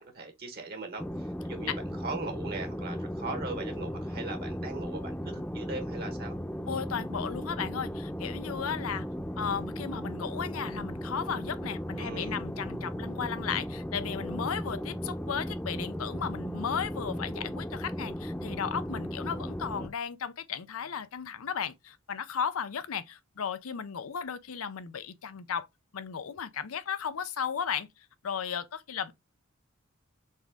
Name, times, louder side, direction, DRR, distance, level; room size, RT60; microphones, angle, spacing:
voice 1, 0.0-1.7 2.0-6.4 12.0-12.4, right 3 dB, 50° right, 1.2 m, -39 dB
sound 1, 1.0-19.9, equal, 5° left, 0.7 m, -36 dB
voice 2, 6.7-9.1 9.4-25.7 25.9-29.1, left 7 dB, 90° left, 0.6 m, -35 dB
4.2 x 3.5 x 3.5 m
head